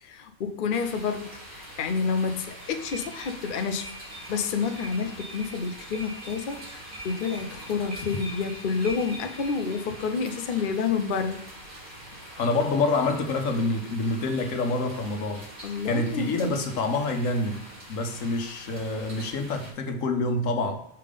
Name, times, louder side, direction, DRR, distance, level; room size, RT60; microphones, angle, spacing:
voice 1, 0.1-3.9 4.3-6.7 7.0-11.4 15.6-16.4, left 5 dB, 55° left, 7 dB, 0.6 m, -29 dB
sound 1, 0.7-19.7, equal, 40° right, 2.1 m, -44 dB
sound 2, 2.4-10.1, right 1 dB, 85° right, 2.1 m, -44 dB
voice 2, 12.4-15.5 15.8-20.8, left 2 dB, 75° left, 5 dB, 1.2 m, -27 dB
5.7 x 3.6 x 4.9 m, 0.78 s
omnidirectional pair, 1.4 m